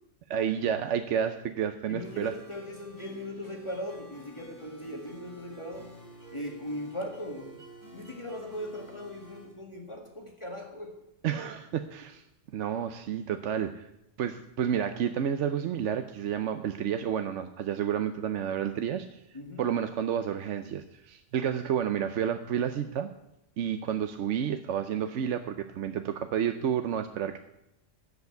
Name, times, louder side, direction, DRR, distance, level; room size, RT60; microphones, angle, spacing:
voice 1, 0.3-2.3 11.2-12.2 12.5-13.9 14.2-19.2 19.6-23.1 23.6-27.4, right 9 dB, 75° right, 8 dB, 1.0 m, -30 dB
voice 2, 1.9-5.9 6.3-7.6 7.9-11.0 19.3-19.7, left 1 dB, 25° left, 0 dB, 1.9 m, -39 dB
sound 1, 2.0-9.4, left 1 dB, 15° right, 6.0 m, -50 dB
10.5 x 8.0 x 8.0 m, 0.83 s
omnidirectional pair, 1.3 m